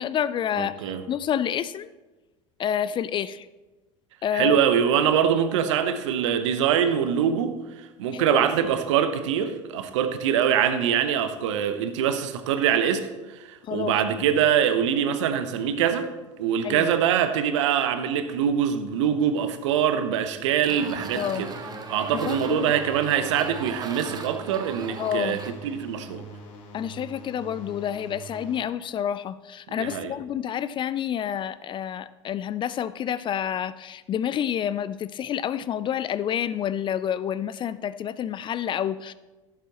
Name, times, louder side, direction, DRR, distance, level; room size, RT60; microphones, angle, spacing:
voice 1, 0.0-1.9 2.6-3.5 4.2-4.6 8.1-8.4 13.7-13.9 16.6-16.9 21.2-21.4 22.2-22.6 25.0-25.4 26.7-39.1, left 9 dB, 30° left, 16 dB, 0.4 m, -28 dB
voice 2, 0.6-1.0 4.3-13.1 13.5-16.1 16.4-21.5 21.9-26.2 29.7-30.1, right 8 dB, 65° right, 9 dB, 0.9 m, -24 dB
sound 1, 20.6-25.5, right 4 dB, 25° right, 1.1 m, -39 dB
sound 2, 20.9-28.6, right 1 dB, 50° left, 1.5 m, -44 dB
16.0 x 7.3 x 3.0 m, 1.2 s
figure-of-eight pair, 70°, 17 cm